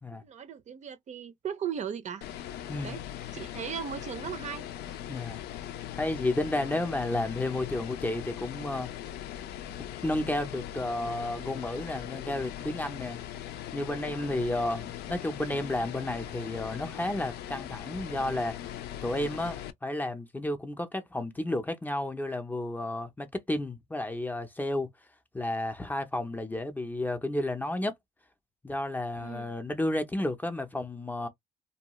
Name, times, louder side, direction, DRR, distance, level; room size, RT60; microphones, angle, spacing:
voice 1, 0.2-2.2 2.8-3.0 3.3-4.7 29.2-29.5, right 8 dB, 45° right, 0.5 m, -37 dB
sound 1, 2.2-19.7, left 11 dB, 75° left, 0.5 m, -40 dB
voice 2, 5.1-5.4 6.0-8.9 10.0-13.2 13.7-18.6 19.0-24.9 25.3-27.9 28.6-31.3, left 1 dB, 10° left, 0.5 m, -32 dB
2.6 x 2.3 x 2.9 m
cardioid pair, 110°, 17 cm